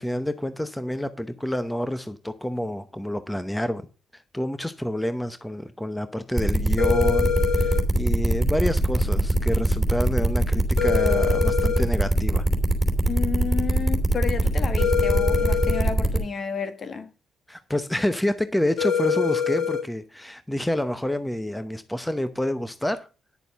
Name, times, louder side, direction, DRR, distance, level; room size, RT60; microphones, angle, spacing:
voice 1, 0.0-3.9 4.1-12.4 17.5-23.1, left 1 dB, 5° left, 0.8 m, -28 dB
sound 1, 6.4-16.2, right 2 dB, 15° right, 2.9 m, -21 dB
sound 2, 6.8-7.8 10.8-11.8 14.8-15.8 18.8-19.8, left 7 dB, 65° left, 5.6 m, -24 dB
voice 2, 13.1-17.1, left 5 dB, 45° left, 1.5 m, -31 dB
10.0 x 6.9 x 5.2 m
cardioid pair, 90°, 0 cm